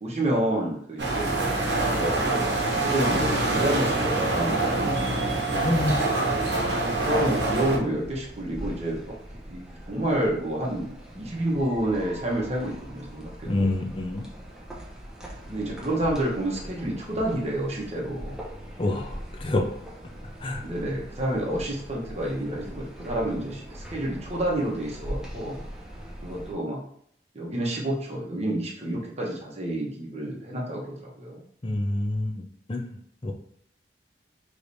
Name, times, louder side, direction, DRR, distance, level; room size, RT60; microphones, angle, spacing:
voice 1, 0.0-5.3 6.6-9.0 9.4-13.7 15.5-18.4 20.6-25.6 26.2-26.8 27.3-31.4, right 1 dB, 35° right, -2 dB, 1.1 m, -29 dB
sound 1, 1.0-7.8, right 2 dB, 75° right, 1.0 m, -25 dB
voice 2, 5.6-6.0 13.4-14.3 18.8-19.7 20.4-20.6 31.6-33.3, left 1 dB, 30° left, 2 dB, 0.6 m, -27 dB
sound 2, 6.9-26.5, equal, 5° right, 0.8 m, -41 dB
4.9 x 3.2 x 2.7 m, 0.67 s
head